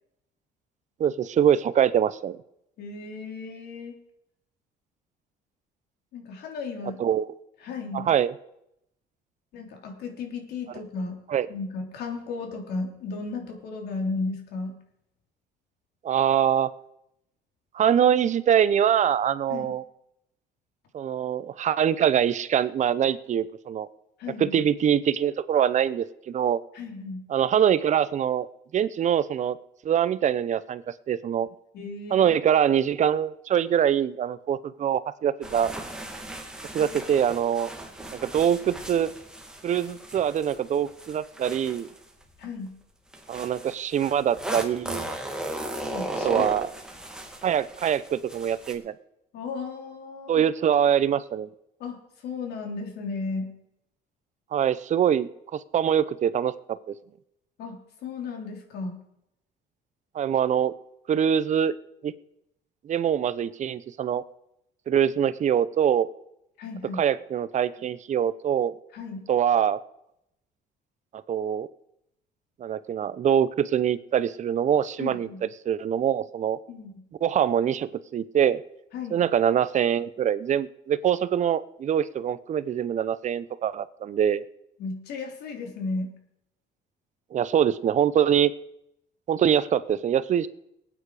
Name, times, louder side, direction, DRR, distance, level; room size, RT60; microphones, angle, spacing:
voice 1, 1.0-2.4 7.0-7.3 7.9-8.3 11.3-11.5 16.0-16.7 17.7-19.8 20.9-23.9 24.4-26.6 27.3-28.5 28.7-29.6 29.8-31.5 32.1-35.7 36.7-37.7 38.1-39.1 39.6-41.9 43.3-45.1 46.2-46.7 47.4-48.9 50.3-51.5 54.5-56.5 56.9-57.0 60.1-60.7 61.1-61.7 62.0-62.1 62.8-64.2 64.9-66.1 67.0-68.7 69.3-69.8 71.3-71.7 72.6-76.6 77.2-78.6 79.1-84.4 87.3-88.5 89.3-90.5, right 9 dB, 45° right, 16 dB, 0.7 m, -24 dB
voice 2, 2.8-4.0 6.1-7.0 7.6-8.1 9.5-11.2 11.5-14.8 19.5-19.7 24.2-24.6 26.7-27.2 31.7-32.4 42.4-42.7 45.9-46.4 49.3-50.4 51.8-53.5 57.6-59.0 66.6-67.0 68.9-69.3 75.0-75.4 76.7-77.0 78.9-79.2 84.8-86.1, left 4 dB, 75° left, 2 dB, 3.4 m, -34 dB
sound 1, 35.4-42.5 43.1-48.7, right 1 dB, 5° right, 2.2 m, -36 dB
20.5 x 9.1 x 4.9 m, 0.81 s
cardioid pair, 110°, 17 cm